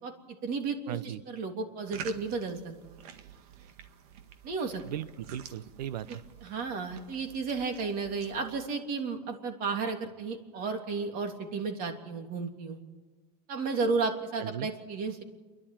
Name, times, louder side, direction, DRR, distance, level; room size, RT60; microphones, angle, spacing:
voice 1, 0.0-3.0 4.4-4.8 6.1-12.8 13.5-15.2, right 4 dB, 45° right, 4 dB, 3.2 m, -33 dB
voice 2, 0.9-1.2 4.8-6.2 14.4-14.7, right 11 dB, 85° right, 16 dB, 0.9 m, -37 dB
sound 1, 1.9-8.7, right 8 dB, 70° right, 1.8 m, -48 dB
28.0 x 11.5 x 9.1 m, 1.3 s
supercardioid pair, 120°, 21 cm